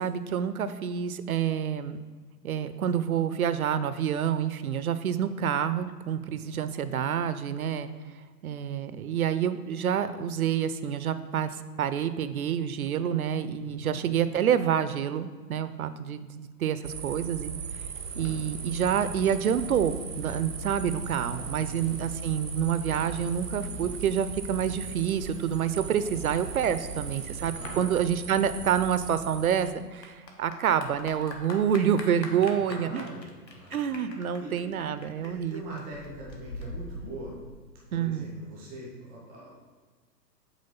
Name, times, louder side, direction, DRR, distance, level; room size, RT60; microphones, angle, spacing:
voice 1, 0.0-2.0 2.4-7.9 8.4-17.5 18.2-33.1 33.7-35.8 37.9-38.3, right 8 dB, 60° right, 13 dB, 0.5 m, -28 dB
voice 2, 6.1-6.5 13.6-14.0 21.5-21.9 27.4-27.9 32.3-33.8 34.4-34.7 35.2-37.4 37.9-39.7, right 1 dB, ahead, -5 dB, 0.4 m, -43 dB
sound 1, 16.8-29.7, right 7 dB, 85° right, 0.8 m, -39 dB
sound 2, 18.0-27.7, left 3 dB, 50° left, 1.5 m, -44 dB
Clapping / Applause, 28.9-37.9, left 2 dB, 80° left, 1.4 m, -44 dB
8.1 x 3.1 x 5.5 m, 1.5 s
figure-of-eight pair, 125°, 50 cm